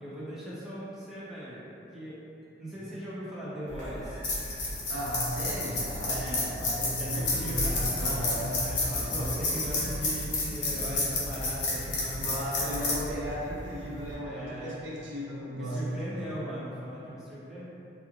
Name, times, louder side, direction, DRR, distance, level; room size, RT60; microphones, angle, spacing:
voice 1, 0.0-1.6 1.9-2.2 2.4-4.2 6.0-6.5 7.0-13.0 14.2-14.8 15.5-17.7, equal, ahead, -10 dB, 0.5 m, -39 dB
sound 1, 3.7-14.1, left 2 dB, 75° left, 0.7 m, -31 dB
voice 2, 4.9-9.5 12.2-16.4, equal, 75° right, -6 dB, 0.6 m, -35 dB
2.4 x 2.3 x 3.0 m, 2.8 s
head